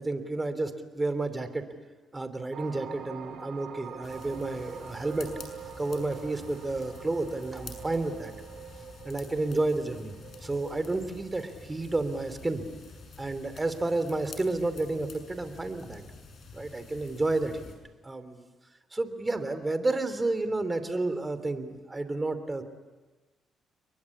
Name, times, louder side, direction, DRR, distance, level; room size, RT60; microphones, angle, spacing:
voice 1, 0.0-1.6 2.1-5.3 5.8-8.3 9.0-10.1 10.4-12.6 13.2-16.0 16.5-17.7 18.0-18.5 18.9-22.6, right 2 dB, 20° right, 10 dB, 3.1 m, -31 dB
sound 1, 2.5-14.9 15.3-15.6, right 8 dB, 70° right, 3.1 m, -46 dB
sound 2, 4.0-17.8, left 4 dB, 55° left, 6.7 m, -48 dB
30.0 x 22.5 x 8.5 m, 1.2 s
cardioid pair, 90°, 0 cm